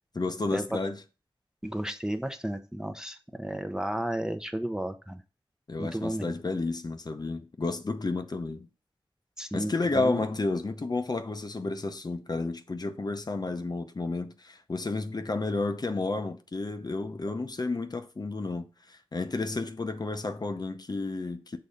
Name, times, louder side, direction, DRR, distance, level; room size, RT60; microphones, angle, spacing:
voice 1, 0.1-1.0 5.7-8.7 9.5-21.6, left 3 dB, 45° left, 0.7 m, -31 dB
voice 2, 1.6-5.2 5.8-6.3 9.4-10.2, right 1 dB, 5° right, 0.7 m, -33 dB
6.6 x 3.7 x 5.5 m
wide cardioid pair, 85°, 9 cm